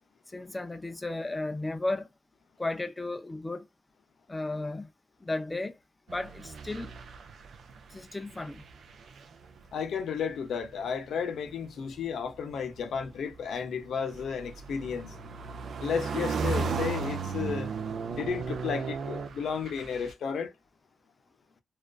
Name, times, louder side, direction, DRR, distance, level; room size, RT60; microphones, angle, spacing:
voice 1, 0.3-2.1 2.6-3.6 4.3-4.9 5.2-5.7 6.1-6.9 7.9-8.6, left 2 dB, 15° left, 0.3 m, -34 dB
sound 1, 6.1-8.0 8.3-9.6 10.6-10.9 13.0-20.1, right 5 dB, 75° right, 0.4 m, -35 dB
voice 2, 9.7-15.1 15.8-17.7 18.1-20.5, left 6 dB, 80° left, 0.5 m, -33 dB
2.4 x 2.3 x 2.2 m
wide cardioid pair, 145°, 0 cm